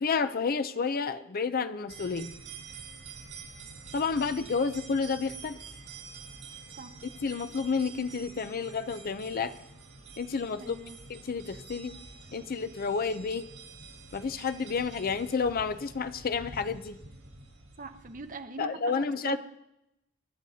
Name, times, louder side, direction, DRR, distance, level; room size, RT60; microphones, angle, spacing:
voice 1, 0.0-2.3 3.9-5.6 7.2-9.5 10.2-10.8 11.1-12.0 12.3-13.5 14.1-17.0 18.6-19.4, left 5 dB, 45° left, 11 dB, 0.5 m, -30 dB
sound 1, 1.9-18.3, right 4 dB, 85° right, 4.4 m, -47 dB
voice 2, 10.6-11.0 17.8-19.4, right 3 dB, 40° right, 9 dB, 0.8 m, -42 dB
23.5 x 10.5 x 2.8 m, 0.86 s
head